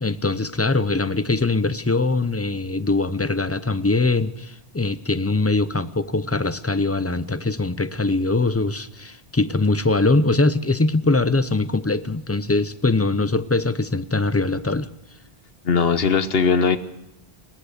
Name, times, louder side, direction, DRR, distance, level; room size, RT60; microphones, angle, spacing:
voice 1, 0.0-14.9, left 3 dB, 20° left, 13 dB, 0.5 m, -22 dB
voice 2, 15.6-16.8, left 5 dB, 70° left, 11 dB, 1.3 m, -19 dB
22.0 x 17.5 x 6.6 m, 0.89 s
omnidirectional pair, 1.0 m